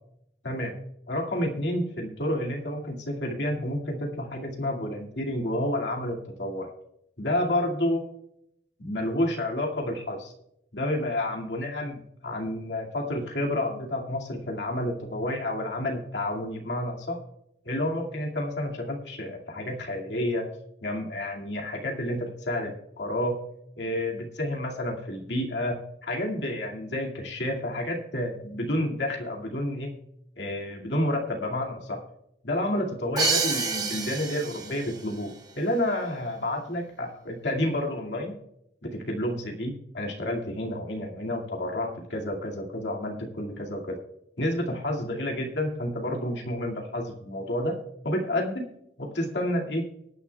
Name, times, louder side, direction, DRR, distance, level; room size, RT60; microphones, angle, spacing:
voice 1, 1.1-6.7 7.2-8.0 8.8-10.3 10.7-17.2 17.6-20.5 20.8-23.4 23.8-29.9 30.4-32.0 32.4-38.3 38.8-44.0 44.4-47.8 48.0-48.7 49.0-49.9, left 1 dB, 85° left, -1 dB, 2.2 m, -30 dB
Crash cymbal, 33.2-35.0, right 4 dB, 20° right, 1.3 m, -28 dB
24.0 x 9.9 x 2.3 m, 0.77 s
head